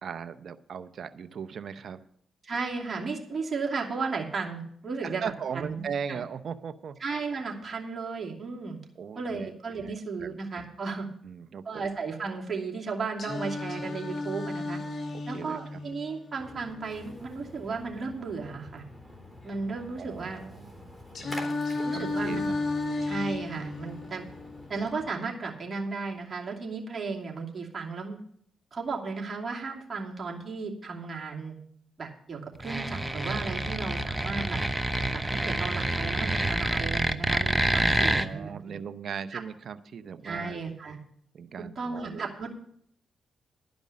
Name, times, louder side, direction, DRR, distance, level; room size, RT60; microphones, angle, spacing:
voice 1, 0.0-2.0 5.0-7.0 9.0-9.5 9.8-10.4 11.2-11.8 15.3-15.8 20.0-20.9 21.2-21.6 21.9-22.6 37.7-40.6 41.3-42.3, right 7 dB, 65° right, 12 dB, 0.7 m, -38 dB
voice 2, 2.4-6.2 7.0-8.8 9.2-11.1 11.6-14.8 15.3-18.8 19.4-20.4 21.8-22.4 23.0-24.3 24.7-28.2 28.7-31.5 32.0-34.6 35.1-38.5 39.3-39.4 40.2-41.0 41.8-42.6, right 4 dB, 45° right, -1 dB, 2.7 m, -34 dB
Singing, 13.2-17.2 21.2-25.2, left 2 dB, 50° left, 2.3 m, -34 dB
Splash splatter, 16.4-25.1, left 1 dB, 10° left, 3.6 m, -47 dB
sound 1, 32.6-38.3, right 1 dB, 10° right, 0.8 m, -27 dB
12.0 x 5.2 x 8.5 m, 0.66 s
supercardioid pair, 55°, 0 cm